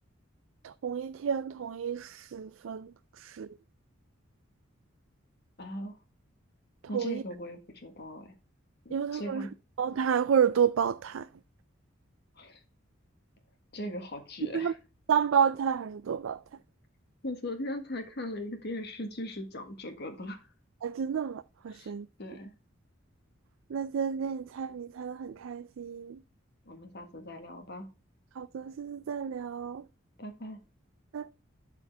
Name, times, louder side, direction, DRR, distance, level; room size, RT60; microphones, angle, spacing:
voice 1, 0.6-2.9 3.2-3.5 6.9-7.2 8.9-9.5 9.8-11.3 14.5-14.7 15.1-16.4 20.8-22.1 23.7-26.2 28.4-29.8 31.1-31.3, right 7 dB, 80° right, 0.4 m, -30 dB
voice 2, 5.6-6.0 6.9-8.3 8.8-9.5 12.4-12.6 13.7-14.8 17.2-20.5 21.7-21.9 22.2-22.5 26.6-27.9 30.2-30.6, left 1 dB, 55° left, 1.6 m, -39 dB
11.5 x 4.5 x 3.4 m
head